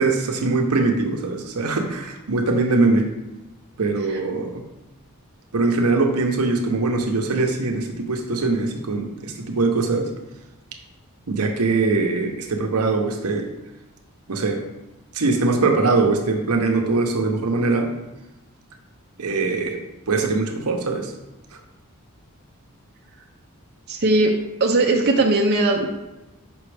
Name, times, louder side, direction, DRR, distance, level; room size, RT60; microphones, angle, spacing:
voice 1, 0.0-3.0 3.8-4.6 5.5-10.1 11.3-13.5 14.3-14.6 15.1-17.9 19.2-19.8 20.1-21.1, right 3 dB, 85° right, 3 dB, 0.8 m, -22 dB
voice 2, 23.9-24.3 24.6-25.9, right 2 dB, 45° right, 0 dB, 0.6 m, -19 dB
6.1 x 5.4 x 3.3 m, 1.0 s
head